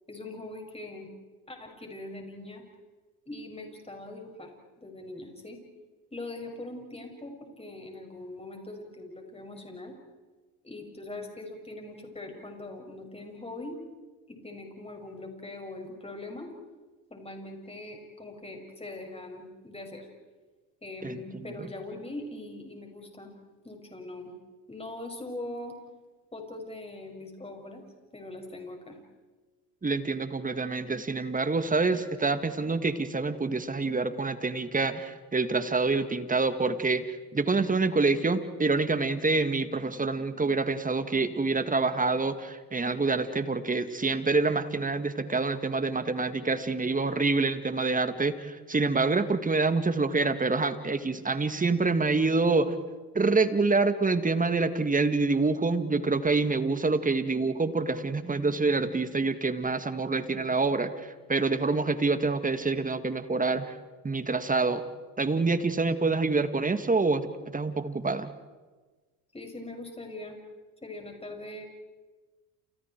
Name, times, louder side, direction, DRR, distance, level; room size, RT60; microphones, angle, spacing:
voice 1, 0.1-1.1 1.5-2.6 3.3-4.5 4.8-5.6 6.1-10.0 10.6-13.8 14.3-16.5 17.1-20.1 20.8-23.3 23.6-24.3 24.7-25.8 26.3-27.9 28.1-29.0 69.3-70.4 70.8-71.6, left 2 dB, 15° left, 2 dB, 6.9 m, -41 dB
voice 2, 29.8-37.0 37.3-52.8 53.1-63.7 64.0-64.8 65.2-68.3, right 3 dB, 20° right, 10 dB, 2.1 m, -26 dB
30.0 x 29.0 x 4.7 m, 1.3 s
supercardioid pair, 80°, 45 cm